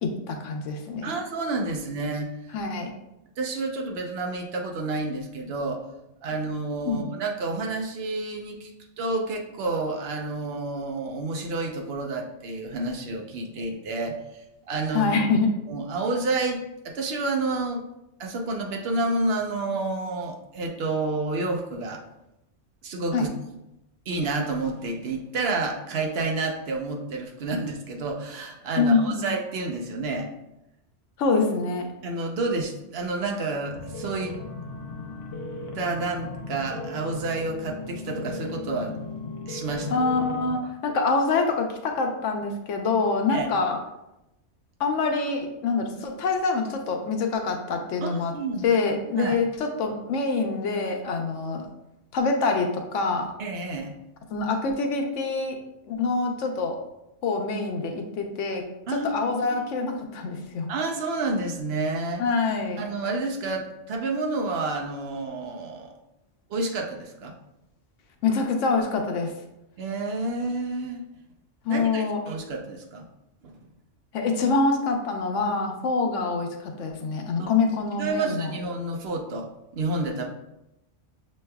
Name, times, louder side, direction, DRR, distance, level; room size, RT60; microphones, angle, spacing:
voice 1, 0.0-1.1 2.5-2.9 6.9-7.0 14.9-15.5 23.1-23.3 28.8-29.3 31.2-31.9 39.9-43.8 44.8-48.4 48.6-51.7 52.1-53.3 54.3-55.6 55.9-56.8 57.2-60.7 62.2-62.8 68.2-69.3 71.6-72.2 74.1-78.6, left 4 dB, 90° left, 4 dB, 1.0 m, -25 dB
voice 2, 1.0-2.3 3.4-5.8 6.2-8.7 9.0-14.2 14.7-15.1 15.7-17.9 18.2-22.0 22.8-23.3 24.1-30.3 32.0-34.4 35.7-38.9 39.5-40.0 43.3-43.5 48.0-48.7 49.2-49.4 53.4-53.9 58.9-59.1 59.5-59.7 60.7-62.2 62.8-65.9 66.5-67.3 69.8-71.0 71.7-73.0 73.4-73.5 77.4-77.5 78.0-80.3, right 3 dB, 60° right, 2 dB, 0.8 m, -29 dB
sound 1, 33.7-40.6, left 3 dB, 65° left, 0.8 m, -36 dB
6.2 x 3.1 x 2.2 m, 0.89 s
omnidirectional pair, 1.2 m